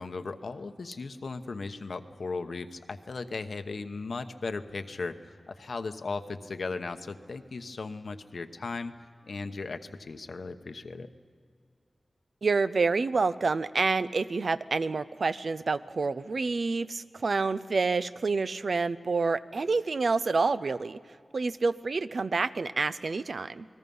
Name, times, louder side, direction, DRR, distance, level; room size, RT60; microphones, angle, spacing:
voice 1, 0.0-8.9 9.3-11.1, left 3 dB, 75° left, 8 dB, 1.0 m, -37 dB
voice 2, 12.4-21.0 21.3-23.7, right 4 dB, 70° right, 13 dB, 0.6 m, -28 dB
28.5 x 20.5 x 5.5 m, 2.2 s
wide cardioid pair, 70°, 0 cm